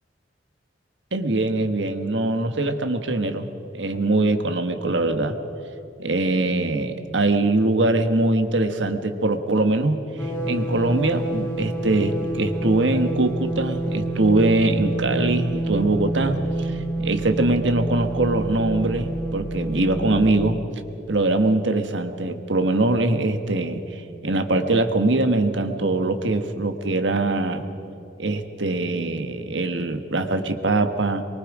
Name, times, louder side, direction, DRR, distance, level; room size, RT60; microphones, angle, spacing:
voice 1, 1.1-3.5 3.7-5.4 6.0-20.6 21.1-27.6 28.2-31.2, right 2 dB, 70° right, 7 dB, 1.5 m, -22 dB
sound 1, 10.2-20.4, right 2 dB, 15° left, 5.7 m, -28 dB
24.5 x 23.5 x 5.0 m, 2.8 s
head